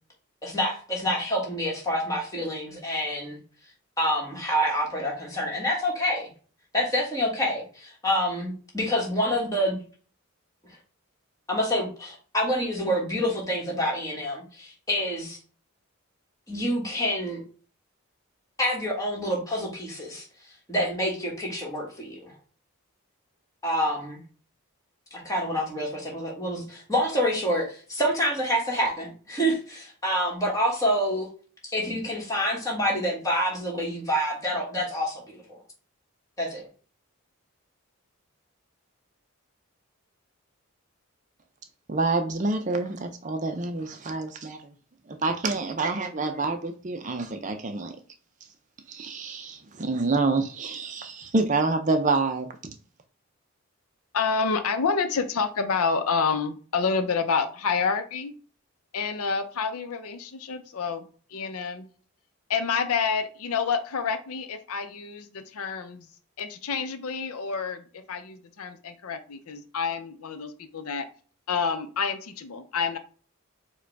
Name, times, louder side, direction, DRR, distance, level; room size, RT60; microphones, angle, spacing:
voice 1, 0.4-3.4 4.0-6.3 6.7-9.8 11.5-15.4 16.5-17.4 18.6-20.3 20.7-22.3 23.6-24.2 25.1-31.3 31.6-35.6 36.4-36.6, equal, 15° left, 1.5 m, -27 dB
voice 2, 41.9-44.6 45.1-47.9 48.9-52.7, right 3 dB, 35° right, 0.5 m, -27 dB
voice 3, 54.1-58.3 58.9-61.9 62.5-66.1 66.4-71.1 71.5-73.0, left 5 dB, 85° left, 0.6 m, -28 dB
4.8 x 2.2 x 4.6 m
head